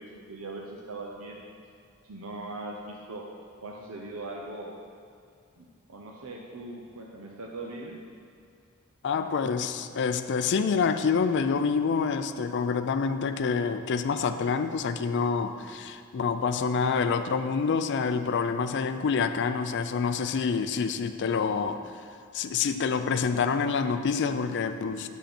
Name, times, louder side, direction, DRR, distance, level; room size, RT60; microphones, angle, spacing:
voice 1, 0.0-1.4 2.0-3.3 3.6-4.7 5.6-8.0, right 2 dB, 70° right, 0 dB, 0.7 m, -40 dB
voice 2, 9.0-21.8 22.3-25.1, left 5 dB, 55° left, 9 dB, 0.4 m, -27 dB
10.0 x 5.5 x 4.4 m, 2.4 s
head